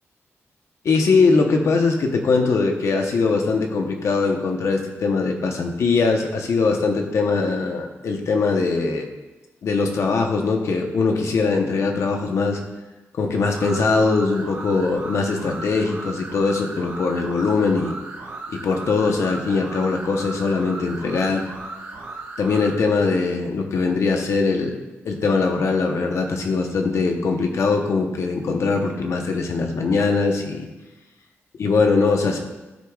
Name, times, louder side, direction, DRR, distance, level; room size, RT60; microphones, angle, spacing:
voice 1, 0.8-9.1 9.6-12.6 13.2-17.9 18.5-21.4 22.4-24.8 25.0-30.7 31.6-32.4, left 4 dB, 70° left, 3 dB, 0.9 m, -21 dB
sound 1, 13.5-22.8, right 2 dB, 65° right, 1.8 m, -36 dB
12.0 x 4.7 x 2.4 m, 1.1 s
wide cardioid pair, 115°, 5 cm